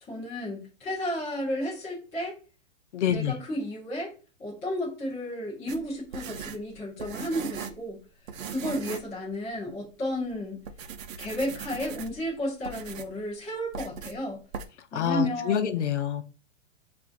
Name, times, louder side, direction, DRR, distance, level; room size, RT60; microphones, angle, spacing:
voice 1, 0.1-2.4 3.1-4.1 4.4-8.0 8.5-10.6 11.2-14.4 14.9-15.7, left 1 dB, 5° left, -9 dB, 0.4 m, -32 dB
voice 2, 2.9-3.3 14.9-16.2, left 9 dB, 65° left, 7 dB, 0.7 m, -26 dB
sound 1, 5.7-7.9 8.3-9.1 9.5-9.6 10.2-10.3 10.6-12.3 12.6-13.2 13.7-14.2 14.5-14.7, right 6 dB, 80° right, 0.7 m, -39 dB
5.7 x 2.5 x 2.5 m, 0.37 s
hypercardioid pair, 165°, 38 cm